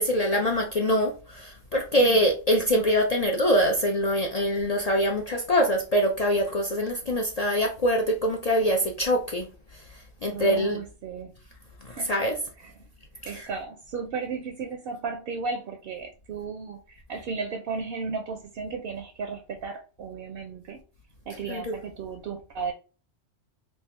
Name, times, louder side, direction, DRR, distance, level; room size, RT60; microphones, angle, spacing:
voice 1, 0.0-9.5 10.2-10.8 11.8-12.4 13.2-13.5 21.5-21.7, equal, 50° left, 0.4 m, -24 dB
voice 2, 10.3-11.3 12.0-12.3 12.6-12.7 13.3-20.8 21.3-22.7, right 5 dB, 60° right, 0.6 m, -34 dB
3.4 x 2.4 x 4.3 m
omnidirectional pair, 1.2 m